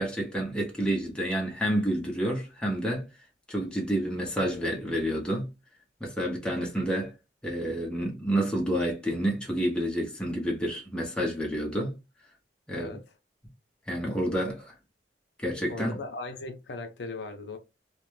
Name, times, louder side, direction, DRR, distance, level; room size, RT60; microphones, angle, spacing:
voice 1, 0.0-3.1 3.5-5.5 6.0-7.1 7.4-11.9 12.7-13.0 13.9-14.7 15.4-16.0, equal, 5° left, 0.7 m, -29 dB
voice 2, 15.7-17.6, left 3 dB, 70° left, 0.6 m, -38 dB
2.5 x 2.1 x 3.1 m
head